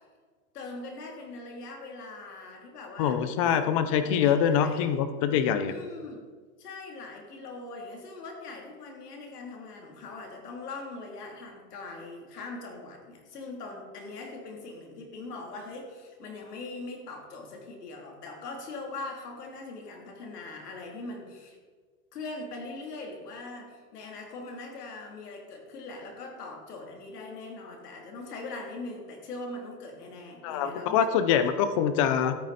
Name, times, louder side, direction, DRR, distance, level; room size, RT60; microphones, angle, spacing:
voice 1, 0.5-3.2 3.4-3.6 4.0-4.3 4.6-4.9 5.2-5.4 5.7-6.2 6.6-21.6 22.1-31.5, left 3 dB, 80° left, 1 dB, 3.2 m, -41 dB
voice 2, 3.0-5.7 30.4-32.4, left 8 dB, 25° left, 11 dB, 0.4 m, -24 dB
13.0 x 9.3 x 4.2 m, 1.5 s
supercardioid pair, 150°, 46 cm